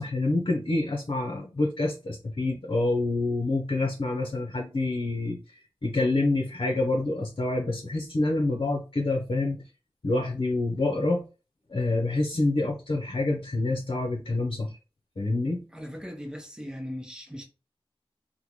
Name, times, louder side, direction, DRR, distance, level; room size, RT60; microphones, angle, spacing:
voice 1, 0.0-5.4 5.8-9.6 10.0-11.2 11.7-14.7 15.2-15.6, left 2 dB, 55° left, 0.7 m, -27 dB
voice 2, 15.7-17.4, equal, 5° right, 1.0 m, -38 dB
3.6 x 2.2 x 3.0 m
wide cardioid pair, 55°, 10 cm